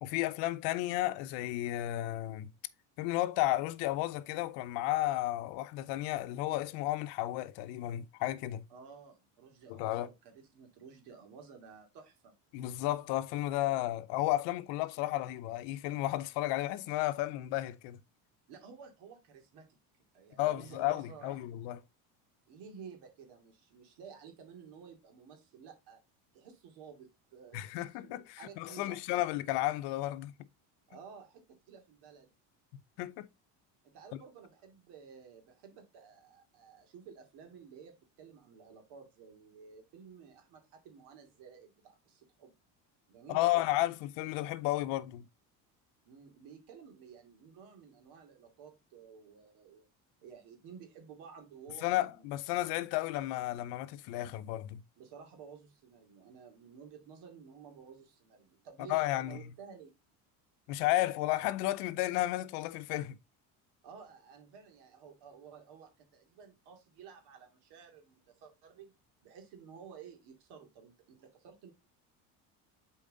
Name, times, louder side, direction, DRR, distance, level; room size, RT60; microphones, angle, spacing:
voice 1, 0.0-2.5 3.0-8.6 9.7-10.1 12.5-18.0 20.4-21.8 27.5-30.3 33.0-33.3 43.3-45.2 51.8-54.8 58.9-59.4 60.7-63.2, left 16 dB, 75° left, 0.7 m, -33 dB
voice 2, 8.7-12.3 18.5-19.7 20.1-21.5 22.5-26.0 26.3-29.2 30.9-32.3 33.8-42.5 43.1-43.7 46.0-49.9 50.2-52.6 55.0-59.9 63.8-68.9 69.2-71.7, right 6 dB, 75° right, 2.6 m, -53 dB
7.3 x 4.6 x 3.9 m
supercardioid pair, 110°, 42 cm